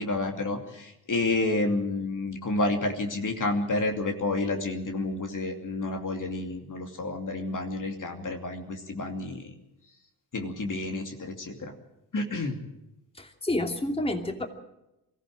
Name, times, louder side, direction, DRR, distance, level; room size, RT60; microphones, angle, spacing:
voice 1, 0.0-9.5 10.3-11.7 12.1-12.6, left 2 dB, 40° left, 4 dB, 2.7 m, -30 dB
voice 2, 13.2-14.5, left 1 dB, 10° left, 4 dB, 2.7 m, -29 dB
23.0 x 15.0 x 7.6 m, 0.90 s
hypercardioid pair, 45°, 46 cm